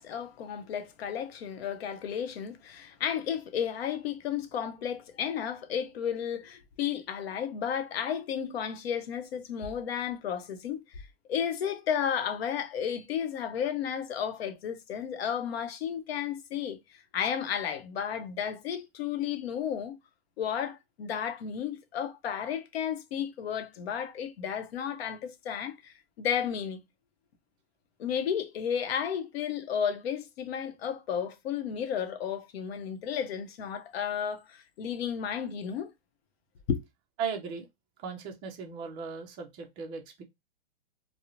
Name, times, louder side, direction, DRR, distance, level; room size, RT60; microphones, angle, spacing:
voice 1, 0.0-11.0 11.3-20.0 20.4-26.8 28.0-35.9 36.7-36.8, left 8 dB, 70° left, 0.7 m, -33 dB
voice 2, 37.2-37.7 38.0-40.2, right 6 dB, 15° right, 0.3 m, -37 dB
2.4 x 2.0 x 2.9 m
hypercardioid pair, 140°, 32 cm